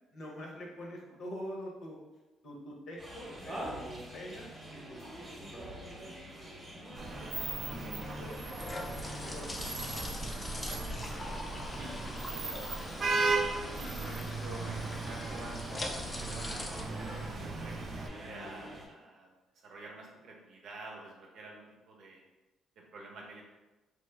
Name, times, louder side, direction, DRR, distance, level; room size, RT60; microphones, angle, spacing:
voice 1, 0.1-2.0 2.4-6.3 7.7-10.1 11.1-11.4 11.9-12.0 12.3-12.7, equal, 60° left, -1 dB, 0.8 m, -46 dB
sound 1, 3.0-18.9, right 1 dB, 20° right, 0.9 m, -45 dB
Vehicle horn car horn honking / Traffic noise roadway noise, 7.0-18.1, right 3 dB, 45° right, 0.3 m, -37 dB
sound 2, 7.5-17.9, left 1 dB, 20° left, 0.4 m, -43 dB
voice 2, 11.8-12.5 13.8-22.2 22.9-23.4, right 2 dB, 65° right, -1 dB, 0.7 m, -49 dB
3.1 x 2.0 x 3.3 m, 1.1 s
cardioid pair, 105°, 0 cm